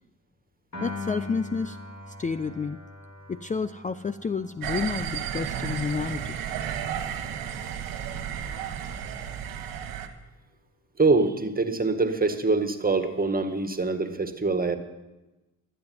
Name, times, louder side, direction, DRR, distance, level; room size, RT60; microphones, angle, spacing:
Piano, 0.7-7.1, left 3 dB, 50° left, 5.3 m, -42 dB
voice 1, 0.8-1.8 2.2-2.8 3.3-6.3, left 5 dB, 20° left, 12 dB, 0.5 m, -30 dB
sound 1, 4.6-10.1, right 8 dB, 90° right, 1.3 m, -33 dB
voice 2, 11.0-14.8, right 3 dB, 25° right, 7 dB, 1.8 m, -24 dB
12.0 x 9.0 x 9.5 m, 1.1 s
supercardioid pair, 55°, 34 cm